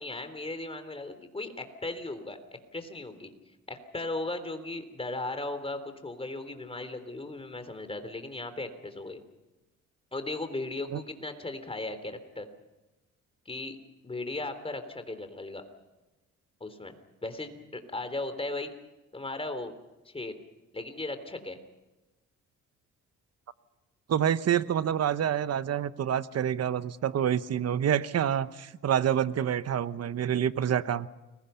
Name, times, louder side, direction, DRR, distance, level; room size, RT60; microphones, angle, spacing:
voice 1, 0.0-2.4 2.7-3.3 3.7-9.2 10.1-12.5 13.5-13.8 14.0-15.6 16.6-16.9 17.2-18.7 19.1-19.7 20.1-20.3 20.7-21.6, left 2 dB, 20° left, 9 dB, 3.5 m, -37 dB
voice 2, 24.1-31.1, right 9 dB, 55° right, 14 dB, 1.1 m, -27 dB
29.5 x 22.0 x 5.8 m, 1.1 s
cardioid pair, 90°, 30 cm